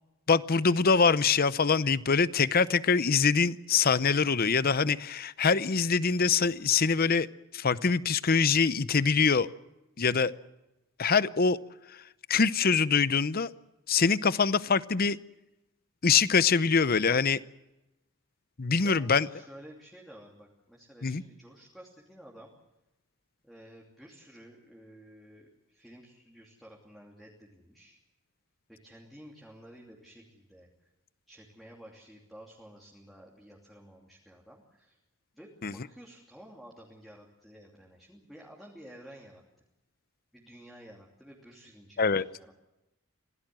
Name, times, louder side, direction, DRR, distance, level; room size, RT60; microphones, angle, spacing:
voice 1, 0.3-7.3 7.5-9.5 10.0-10.3 11.0-11.6 12.3-13.5 13.9-15.2 16.0-17.4 18.6-19.3 21.0-21.2 35.6-35.7 42.0-42.2, left 5 dB, 45° left, 16 dB, 0.7 m, -24 dB
voice 2, 18.8-22.5 23.4-28.0 28.7-30.7 31.3-35.0 35.3-39.4 40.3-42.5, equal, ahead, -2 dB, 2.9 m, -52 dB
26.5 x 17.5 x 7.6 m, 0.97 s
head